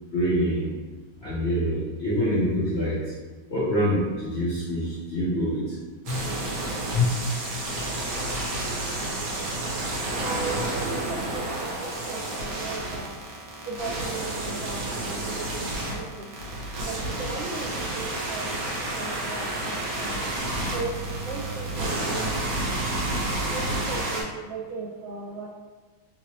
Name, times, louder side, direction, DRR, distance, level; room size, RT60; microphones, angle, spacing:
voice 1, 0.1-0.6 1.2-3.0 3.5-5.6 6.1-6.3 6.9-7.1, equal, 80° left, -11 dB, 0.5 m, -25 dB
sound 1, 6.1-24.2, right 2 dB, 65° right, 0.8 m, -30 dB
voice 2, 10.2-13.1 13.6-16.3 16.8-18.4 18.8-20.2 20.7-20.9 21.2-22.3 23.5-25.5, right 4 dB, 35° right, -15 dB, 1.4 m, -36 dB
3.2 x 3.0 x 2.9 m, 1.3 s
omnidirectional pair, 2.3 m